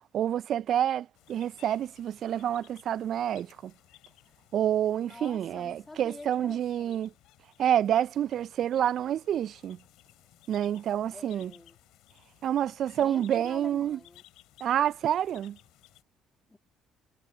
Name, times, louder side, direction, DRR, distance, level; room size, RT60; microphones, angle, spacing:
voice 1, 0.1-3.7 4.5-7.1 7.6-9.8 10.5-11.5 12.4-14.0 14.6-15.6, right 10 dB, 55° right, 0.5 m, -28 dB
sound 1, 1.2-16.0, left 16 dB, 70° left, 6.2 m, -59 dB
voice 2, 5.0-7.1 11.1-11.8 13.0-14.3 16.5-16.6, left 2 dB, 15° left, 3.0 m, -47 dB
hypercardioid pair, 55°, 0 cm